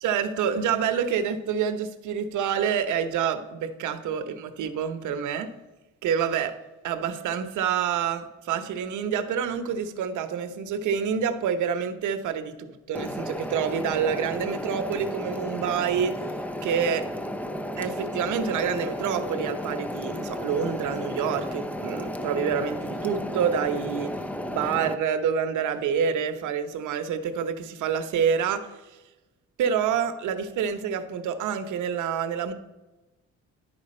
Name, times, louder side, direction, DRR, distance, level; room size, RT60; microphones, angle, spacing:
voice 1, 0.0-5.5 6.0-6.6 6.8-16.3 16.6-17.1 17.8-24.1 24.5-29.0 29.6-32.5, right 7 dB, 75° right, 10 dB, 0.8 m, -27 dB
sound 1, 12.9-24.9, equal, 5° left, 0.5 m, -33 dB
11.0 x 4.7 x 4.2 m, 1.1 s
cardioid pair, 90°, 30 cm